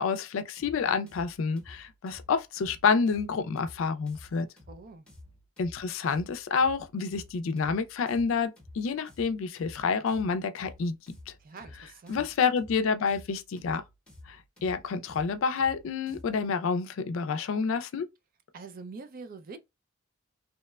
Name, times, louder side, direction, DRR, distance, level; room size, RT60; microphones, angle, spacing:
voice 1, 0.0-4.5 5.6-11.2 12.1-13.8 14.3-14.4 14.6-18.1, left 5 dB, 70° left, 0.4 m, -28 dB
sound 1, 0.6-16.5, left 1 dB, 5° left, 0.7 m, -52 dB
voice 2, 4.7-5.1 11.4-12.3 18.5-19.6, right 4 dB, 45° right, 0.4 m, -44 dB
2.8 x 2.1 x 2.2 m
head